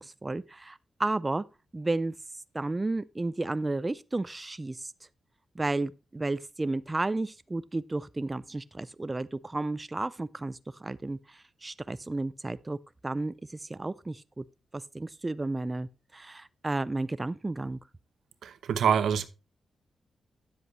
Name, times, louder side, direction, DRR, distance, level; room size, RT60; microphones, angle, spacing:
voice 1, 0.0-1.4 1.7-2.2 2.5-4.9 5.6-12.8 13.0-14.4 14.7-17.8, right 2 dB, 20° right, 0.4 m, -32 dB
voice 2, 18.4-19.2, right 8 dB, 85° right, 0.8 m, -25 dB
9.8 x 7.7 x 3.1 m
cardioid pair, 80°, 0 cm